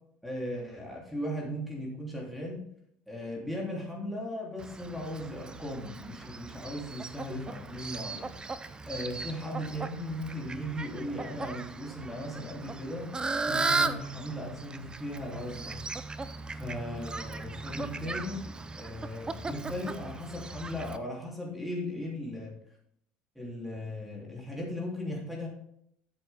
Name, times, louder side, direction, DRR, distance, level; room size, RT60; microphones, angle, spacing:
voice 1, 0.2-2.6 3.1-8.3 8.9-13.1 13.5-15.8 16.5-22.6 23.3-25.5, left 1 dB, ahead, -3 dB, 3.0 m, -37 dB
Fowl, 4.6-21.0, right 3 dB, 20° right, 0.5 m, -37 dB
9.2 x 7.0 x 3.5 m, 0.73 s
supercardioid pair, 95°, 5 cm